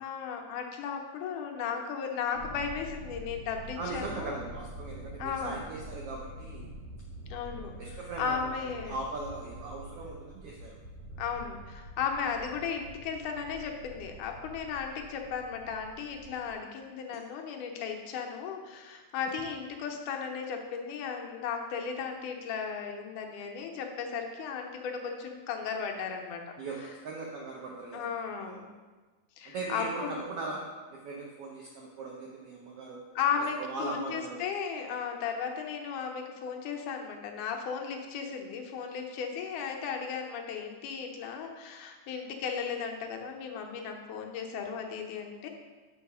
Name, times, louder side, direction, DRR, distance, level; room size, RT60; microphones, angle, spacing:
voice 1, 0.0-4.4 5.2-5.6 7.3-9.0 11.2-26.4 26.8-26.9 27.9-28.7 29.4-30.2 33.2-45.5, left 6 dB, 80° left, 2 dB, 2.3 m, -35 dB
Thunder, 2.3-16.6, equal, 65° right, 2.0 m, -46 dB
voice 2, 3.8-6.7 7.8-10.8 26.6-26.8 27.0-28.1 28.4-28.6 29.4-30.6 30.9-33.0 33.4-34.4, right 3 dB, 80° right, -1 dB, 1.3 m, -39 dB
7.1 x 4.7 x 5.5 m, 1.3 s
omnidirectional pair, 3.6 m